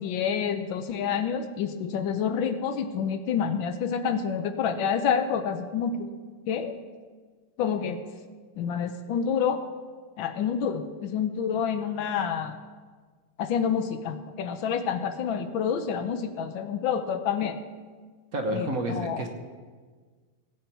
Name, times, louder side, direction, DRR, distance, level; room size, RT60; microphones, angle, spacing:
voice 1, 0.0-6.1 6.5-6.7 7.6-8.0 8.6-9.6 10.2-12.6 13.4-17.6 18.5-19.2, left 7 dB, 70° left, 9 dB, 1.4 m, -28 dB
voice 2, 18.3-19.3, right 1 dB, 50° right, 4 dB, 1.3 m, -29 dB
17.0 x 8.5 x 4.6 m, 1.5 s
omnidirectional pair, 2.3 m